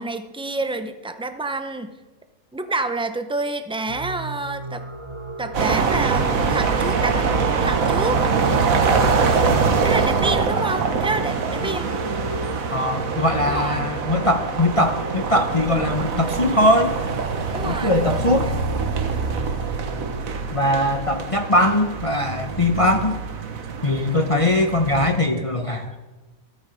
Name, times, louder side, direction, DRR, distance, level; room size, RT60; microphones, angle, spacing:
voice 1, 0.0-1.9 2.5-4.8 5.4-8.3 9.8-11.9 13.4-13.9 17.5-18.5, right 2 dB, 10° right, 9 dB, 0.3 m, -28 dB
sound 1, 3.9-20.2, right 2 dB, 25° right, 0.9 m, -35 dB
sound 2, 5.5-25.1, right 5 dB, 70° right, 1.6 m, -24 dB
voice 2, 12.7-17.0 17.6-18.4 20.5-23.2 23.8-25.9, left 1 dB, 30° left, 5 dB, 0.8 m, -21 dB
14.0 x 13.0 x 5.0 m, 1.2 s
omnidirectional pair, 1.5 m